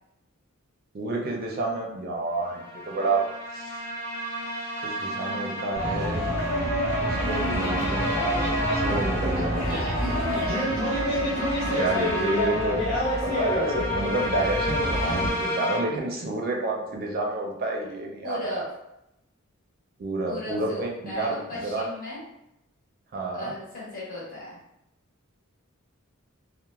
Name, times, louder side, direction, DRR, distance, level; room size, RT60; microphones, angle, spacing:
voice 1, 0.9-3.3 3.5-3.8 4.8-6.3 6.8-8.3 8.7-9.5 11.7-18.7 20.0-21.9 23.1-23.5, right 2 dB, 45° right, 0 dB, 0.4 m, -30 dB
sound 1, 2.4-15.8, equal, 10° left, 0.8 m, -31 dB
sound 2, 5.7-15.3, equal, 85° left, 1.1 m, -27 dB
voice 2, 5.9-7.3 9.3-10.8 11.5-12.1 18.2-18.7 20.3-22.2 23.3-24.6, left 1 dB, 45° left, -6 dB, 1.0 m, -38 dB
3.0 x 2.0 x 2.3 m, 0.84 s
head